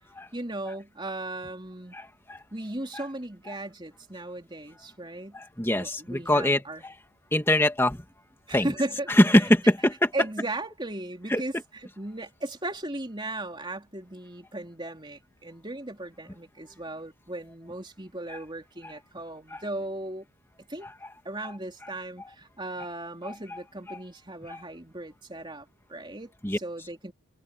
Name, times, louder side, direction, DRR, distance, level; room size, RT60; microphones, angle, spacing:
voice 1, 0.3-2.0 2.5-5.4 5.7-6.8 8.5-9.1 10.1-11.5 12.0-20.3 20.7-20.9 21.3-27.1, right 1 dB, 20° right, 3.6 m, -36 dB
voice 2, 1.9-2.4 2.9-3.0 5.3-6.9 7.3-8.0 8.5-8.7 9.1-10.1 11.3-11.4 18.3-18.4 19.5-19.6 20.8-20.9 23.2-23.6 23.9-24.0 24.5-24.6 26.4-26.6, left 1 dB, 10° left, 2.1 m, -24 dB
head